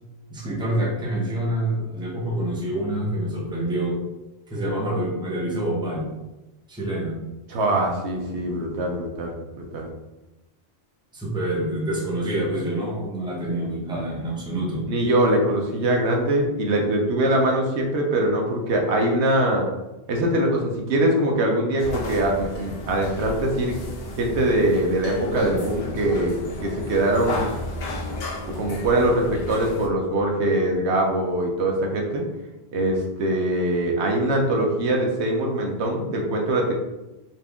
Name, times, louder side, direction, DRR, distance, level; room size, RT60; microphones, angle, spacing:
voice 1, 0.3-4.0 4.5-6.1 6.7-7.2 11.1-14.9, right 1 dB, 5° right, -3 dB, 0.7 m, -27 dB
voice 2, 7.5-9.9 13.5-13.6 14.8-19.7 20.1-23.8 24.2-26.3 26.6-27.5 28.5-32.2 32.7-36.7, right 1 dB, 80° right, 1 dB, 1.0 m, -22 dB
sound 1, 21.8-29.9, left 1 dB, 65° left, 1.0 m, -33 dB
4.1 x 2.6 x 3.4 m, 1.0 s
omnidirectional pair, 1.1 m